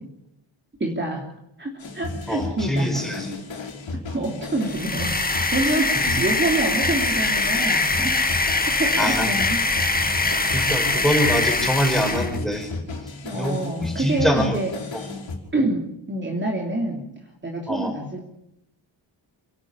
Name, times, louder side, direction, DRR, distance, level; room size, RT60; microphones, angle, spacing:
voice 1, 0.8-1.3 1.6-2.9 3.9-8.2 8.6-9.7 12.1-12.3 12.9-14.7 15.5-17.0 17.4-18.3, right 2 dB, 25° right, 0 dB, 3.0 m, -27 dB
sound 1, 1.8-15.4, left 3 dB, 80° left, 4.6 m, -34 dB
voice 2, 2.3-3.3 6.0-6.2 9.0-9.4 10.5-12.7 13.3-14.6 14.9-15.2 17.7-17.9, equal, ahead, 4 dB, 5.4 m, -24 dB
sound 2, 4.6-12.4, left 3 dB, 20° left, 1.9 m, -23 dB
29.0 x 12.5 x 8.6 m, 0.83 s
wide cardioid pair, 135°, 45 cm